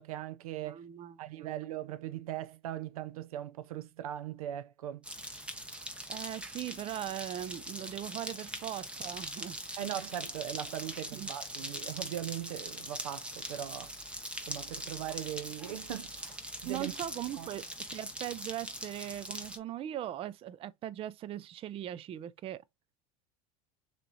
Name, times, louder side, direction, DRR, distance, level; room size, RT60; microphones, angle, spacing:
voice 1, 0.0-0.8 1.2-5.0 9.8-13.9 14.5-16.4 16.6-16.9 17.4-17.5, right 12 dB, 90° right, 0.7 m, -39 dB
voice 2, 0.6-1.5 6.1-9.6 10.9-11.3 16.6-22.6, right 12 dB, 30° right, 0.5 m, -40 dB
sound 1, 5.0-19.6, right 1 dB, 5° right, 1.1 m, -42 dB
6.7 x 3.0 x 2.6 m
supercardioid pair, 115°, 18 cm